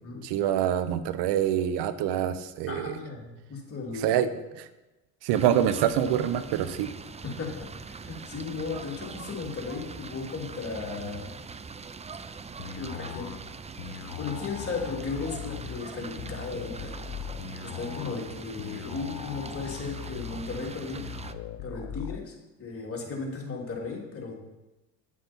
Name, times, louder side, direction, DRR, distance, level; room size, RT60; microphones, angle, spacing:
voice 1, 0.2-3.0 3.9-4.3 5.2-6.9, right 10 dB, 75° right, 13 dB, 0.9 m, -25 dB
voice 2, 2.7-4.2 7.2-11.3 12.7-13.3 14.2-16.9 17.6-21.1 21.6-24.3, left 4 dB, 35° left, -2 dB, 3.2 m, -36 dB
sound 1, 5.3-21.3, right 5 dB, 15° right, 0.5 m, -42 dB
sound 2, 12.6-22.2, left 9 dB, 80° left, 1.0 m, -40 dB
9.2 x 8.3 x 4.5 m, 1.0 s
supercardioid pair, 75°, 41 cm